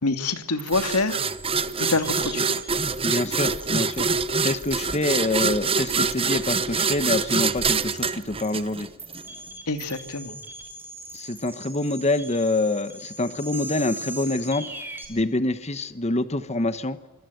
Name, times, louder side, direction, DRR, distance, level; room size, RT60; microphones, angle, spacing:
voice 1, 0.0-1.2 1.8-2.5 9.7-10.4, left 3 dB, 90° left, 8 dB, 2.5 m, -26 dB
sound 1, 0.6-15.1, right 2 dB, 10° right, 4.8 m, -41 dB
sound 2, 0.7-9.2, right 5 dB, 25° right, 1.0 m, -25 dB
voice 2, 3.0-8.9 11.1-14.7 15.1-17.0, left 2 dB, 30° left, 12 dB, 1.2 m, -26 dB
25.5 x 25.5 x 8.1 m, 1.1 s
head